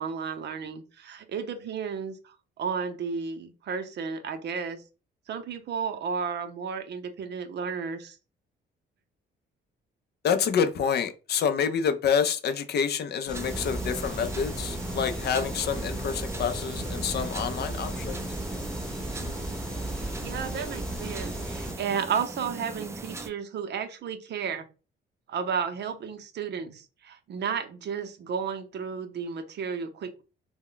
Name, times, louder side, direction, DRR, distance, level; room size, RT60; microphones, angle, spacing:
voice 1, 0.0-4.8 5.3-8.2 19.9-24.7 25.3-30.2, right 6 dB, 60° right, 0.6 m, -33 dB
voice 2, 10.2-18.2, left 7 dB, 55° left, 0.5 m, -27 dB
sound 1, 13.3-21.7, right 1 dB, 5° left, 0.8 m, -35 dB
sound 2, 13.3-23.3, right 3 dB, 15° right, 0.3 m, -39 dB
2.2 x 2.1 x 3.8 m
cardioid pair, 90°, 20 cm